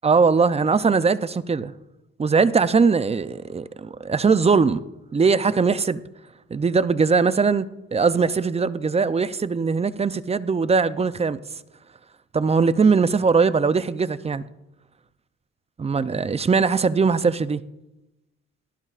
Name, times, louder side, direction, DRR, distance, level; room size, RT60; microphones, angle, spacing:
voice 1, 0.0-1.7 2.2-4.9 5.1-6.0 6.5-11.4 12.3-14.5 15.8-17.6, right 5 dB, 20° right, 0.5 m, -20 dB
18.5 x 12.5 x 2.5 m
cardioid pair, 90°, 30 cm